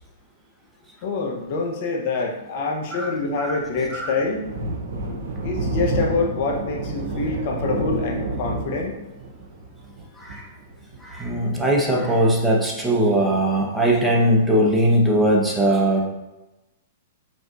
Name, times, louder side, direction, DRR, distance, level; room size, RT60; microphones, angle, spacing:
voice 1, 1.0-4.5 5.4-9.0, left 3 dB, 50° left, 0 dB, 0.8 m, -26 dB
Thunder, 3.2-12.3, right 2 dB, 70° right, 0.7 m, -30 dB
voice 2, 11.0-16.1, right 1 dB, 5° right, -3 dB, 0.9 m, -20 dB
5.0 x 3.7 x 2.5 m, 1.0 s
hypercardioid pair, 115°, 0 cm